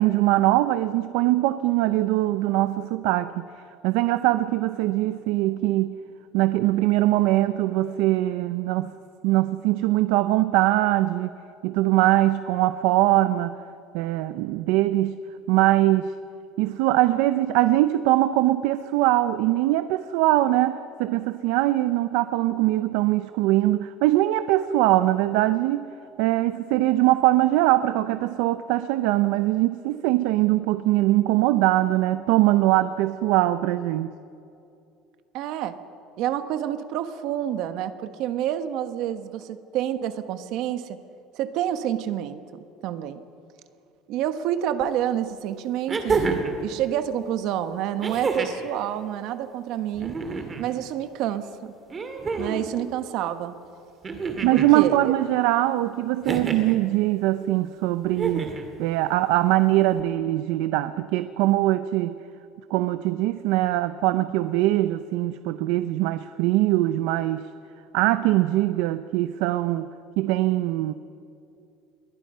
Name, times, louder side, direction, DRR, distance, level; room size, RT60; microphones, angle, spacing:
voice 1, 0.0-3.4 3.8-5.9 6.3-8.9 9.2-11.3 11.6-13.6 13.9-15.2 15.5-16.1 16.6-25.9 26.2-34.1 54.4-58.5 58.8-62.2 62.7-67.5 67.9-69.9 70.2-70.9, right 16 dB, 70° right, 12 dB, 0.7 m, -22 dB
voice 2, 35.3-35.8 36.2-41.0 41.3-42.4 42.8-43.2 44.1-50.1 50.6-51.7 52.4-53.5 54.5-55.1, right 11 dB, 50° right, 10 dB, 1.2 m, -28 dB
sound 1, 44.8-44.9 45.9-46.6 48.0-48.7 49.9-50.7 51.9-52.7 54.0-54.7 56.2-56.8 58.1-58.7 60.0-60.1, right 4 dB, 20° right, 2.0 m, -28 dB
27.5 x 22.0 x 5.6 m, 2.6 s
cardioid pair, 175°, 0 cm